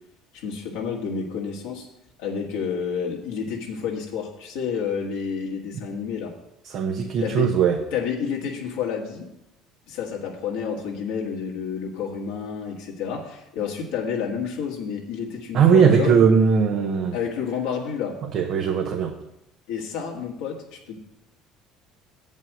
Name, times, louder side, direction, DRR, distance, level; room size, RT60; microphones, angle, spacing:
voice 1, 0.3-1.9 2.2-6.3 7.2-7.5 7.9-9.3 9.9-16.2 17.1-18.2 19.7-21.0, left 6 dB, 80° left, -2 dB, 1.7 m, -29 dB
voice 2, 6.6-7.8 15.5-17.2 18.3-19.1, right 7 dB, 60° right, 2 dB, 1.0 m, -19 dB
7.7 x 5.5 x 7.6 m, 0.86 s
hypercardioid pair, 70°, 0 cm